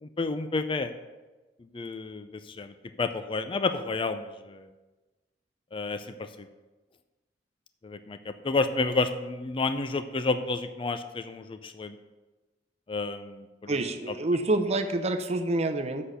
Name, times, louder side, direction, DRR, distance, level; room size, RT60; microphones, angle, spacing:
voice 1, 0.0-0.9 1.7-4.7 5.7-6.5 7.8-12.0 12.9-13.8, left 3 dB, 30° left, 10 dB, 0.4 m, -30 dB
voice 2, 13.7-16.0, right 2 dB, 35° right, 7 dB, 0.7 m, -27 dB
7.8 x 6.4 x 6.7 m, 1.2 s
head